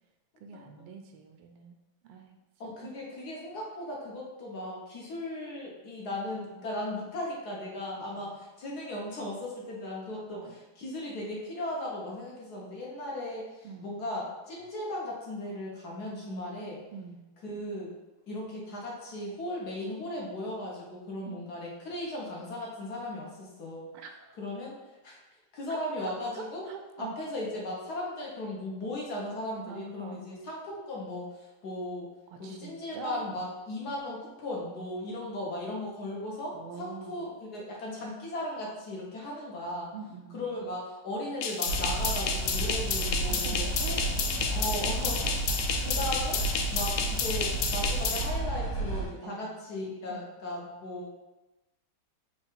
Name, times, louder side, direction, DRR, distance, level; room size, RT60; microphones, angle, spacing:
voice 1, 0.4-1.8 2.0-2.4 2.8-2.9 8.0-8.4 10.1-10.6 13.6-13.9 16.9-17.2 21.3-21.5 23.9-24.4 25.7-27.2 29.6-30.2 32.3-33.3 36.5-37.2 39.9-40.4 43.3-44.1 44.3-44.9 49.2-49.4 50.1-50.3, right 4 dB, 85° right, 5 dB, 1.5 m, -44 dB
voice 2, 2.6-8.3 8.6-16.8 17.4-17.9 18.3-23.9 24.4-24.8 25.0-25.2 25.5-26.6 27.0-32.1 32.4-39.9 40.3-43.5 43.9-44.0 44.5-45.4 45.6-51.1, left 1 dB, 55° left, -3 dB, 1.2 m, -37 dB
sound 1, 41.4-48.3, left 6 dB, 90° left, 0.9 m, -31 dB
sound 2, 41.7-49.1, right 2 dB, 70° left, 2.0 m, -32 dB
4.7 x 2.4 x 4.4 m, 1.0 s
omnidirectional pair, 2.4 m